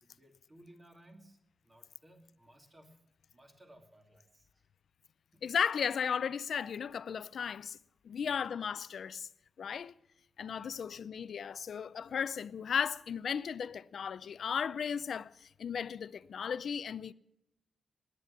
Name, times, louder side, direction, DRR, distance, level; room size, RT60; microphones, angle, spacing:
voice 1, 0.0-1.4 1.6-3.0 3.3-4.6 5.3-5.4 8.1-8.4 10.5-11.0, right 1 dB, 30° right, 2.4 m, -60 dB
voice 2, 5.4-7.8 8.0-9.3 9.6-9.9 10.4-17.1, left 7 dB, 75° left, 0.5 m, -35 dB
18.5 x 9.9 x 7.2 m
wide cardioid pair, 120°, 0 cm